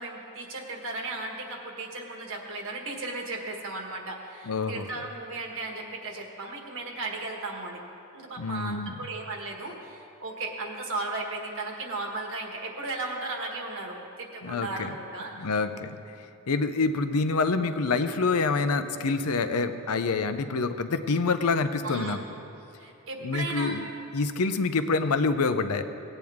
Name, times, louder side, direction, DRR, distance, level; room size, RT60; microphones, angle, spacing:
voice 1, 0.0-7.8 8.1-15.5 21.8-22.2 22.8-23.8, right 2 dB, 65° right, 1 dB, 1.5 m, -35 dB
voice 2, 4.5-4.9 8.4-8.9 14.4-14.9 15.4-16.2 16.5-22.2 23.2-23.8 24.1-25.8, left 4 dB, 80° left, 9 dB, 0.6 m, -26 dB
17.5 x 9.0 x 3.6 m, 2.7 s
head